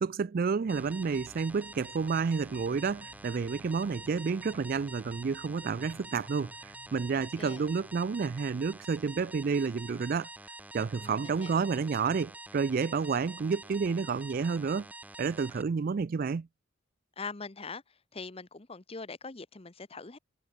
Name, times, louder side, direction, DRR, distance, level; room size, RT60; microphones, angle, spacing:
voice 1, 0.0-10.3 10.7-14.9 15.2-16.5, right 5 dB, 45° right, 0.4 m, -30 dB
sound 1, 0.6-10.3, left 1 dB, 90° left, 2.6 m, -59 dB
sound 2, 0.7-15.6, right 2 dB, 10° right, 1.3 m, -47 dB
voice 2, 7.1-7.6 11.0-11.7 17.2-17.8 18.1-20.2, left 4 dB, 30° left, 0.9 m, -42 dB
head